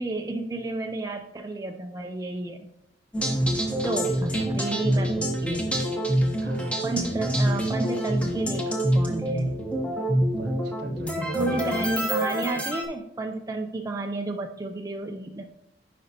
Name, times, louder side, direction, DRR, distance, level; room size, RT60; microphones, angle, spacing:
voice 1, 0.0-2.7 3.8-5.7 6.8-9.7 11.3-15.4, right 2 dB, 20° right, 3 dB, 0.3 m, -31 dB
sound 1, 3.1-12.8, right 1 dB, 5° left, 0.9 m, -26 dB
voice 2, 3.6-5.1 6.4-6.8 10.4-11.8, right 1 dB, 60° right, 6 dB, 0.8 m, -38 dB
9.8 x 5.1 x 2.8 m, 0.83 s
head